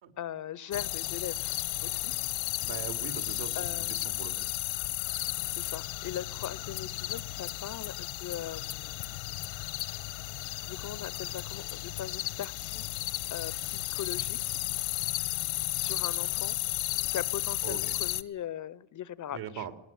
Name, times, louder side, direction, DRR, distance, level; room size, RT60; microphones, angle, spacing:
voice 1, 0.2-1.5 1.8-2.1 3.5-4.0 5.5-9.0 10.7-14.6 15.7-16.6 17.1-19.7, left 10 dB, 40° left, 19 dB, 0.9 m, -40 dB
sound 1, 0.7-18.2, left 18 dB, 80° left, 1.3 m, -34 dB
voice 2, 2.6-3.6 3.9-4.3 17.6-18.0 19.3-19.7, right 9 dB, 60° right, 7 dB, 3.5 m, -40 dB
19.5 x 19.0 x 9.3 m, 0.78 s
cardioid pair, 110°, 45 cm